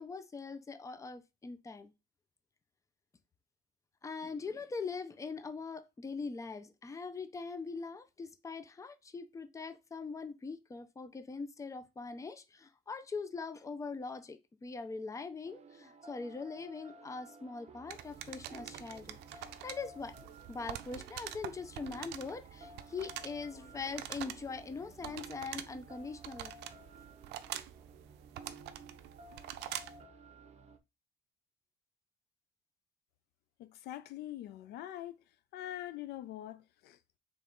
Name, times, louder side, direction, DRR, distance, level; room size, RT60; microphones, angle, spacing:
voice 1, 0.0-1.9 4.0-20.1 20.5-26.5, left 4 dB, 20° left, 0.5 m, -42 dB
sound 1, 15.4-30.8, right 3 dB, 40° right, 0.7 m, -54 dB
sound 2, 17.9-30.0, right 12 dB, 85° right, 0.4 m, -46 dB
voice 2, 33.6-35.2 35.5-37.2, left 13 dB, 75° left, 0.4 m, -44 dB
3.5 x 3.2 x 3.8 m
cardioid pair, 110°, 17 cm